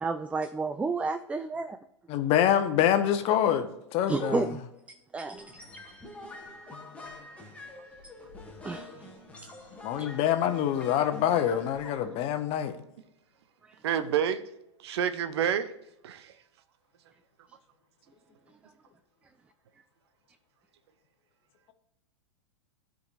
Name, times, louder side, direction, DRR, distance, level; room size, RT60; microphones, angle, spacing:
voice 1, 0.0-1.8 4.1-4.6 5.1-5.5 8.6-9.1 10.0-10.1 13.7-13.8, right 4 dB, 10° right, 0.4 m, -31 dB
voice 2, 2.1-4.5 9.8-12.8, left 10 dB, 40° left, 1.1 m, -26 dB
sound 1, 5.3-12.0, left 2 dB, 10° left, 1.6 m, -46 dB
voice 3, 13.8-14.5 14.8-15.7 16.0-16.3, right 9 dB, 65° right, 0.8 m, -28 dB
14.5 x 5.2 x 2.6 m
hypercardioid pair, 100°, 15 cm